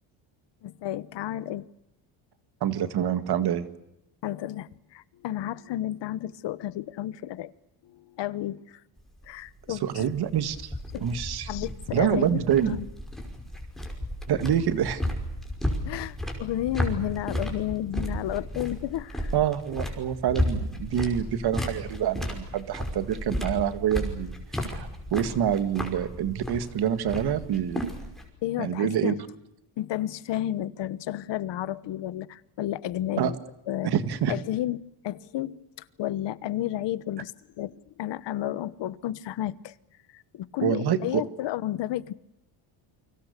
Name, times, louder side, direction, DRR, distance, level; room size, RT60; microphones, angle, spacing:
voice 1, 0.6-1.7 4.2-7.5 7.8-8.8 9.3-10.1 10.9-11.1 11.5-12.9 15.8-19.3 28.4-29.2 29.8-33.4 33.7-33.9 34.3-35.6 36.0-37.3 37.6-39.7 40.1-42.1, left 13 dB, 55° left, 17 dB, 1.2 m, -32 dB
voice 2, 2.6-3.7 9.7-10.7 11.0-11.5 11.9-12.8 14.3-15.0 19.3-24.3 24.6-27.8 28.6-29.1 33.2-33.3 33.8-34.3 40.6-41.2, right 9 dB, 50° right, 11 dB, 2.0 m, -26 dB
sound 1, 9.0-28.3, equal, ahead, 5.5 m, -33 dB
29.5 x 24.5 x 6.8 m, 0.88 s
cardioid pair, 145°, 50 cm